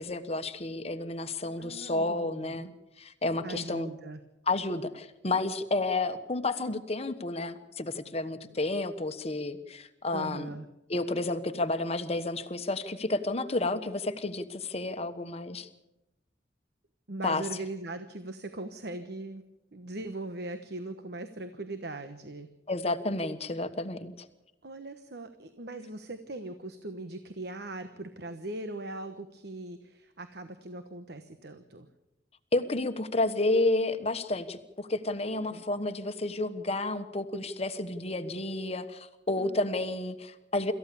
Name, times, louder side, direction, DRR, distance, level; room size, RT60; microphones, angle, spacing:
voice 1, 0.0-2.7 3.0-3.9 4.5-10.5 10.9-15.7 17.2-17.4 22.7-24.3 32.5-40.7, left 2 dB, 35° left, 9 dB, 1.3 m, -31 dB
voice 2, 1.6-2.7 3.4-4.2 10.1-10.7 17.1-19.4 19.7-22.5 24.6-31.9 35.3-35.6 39.4-39.6, right 2 dB, 65° right, 9 dB, 1.2 m, -40 dB
26.5 x 14.5 x 7.0 m, 0.93 s
head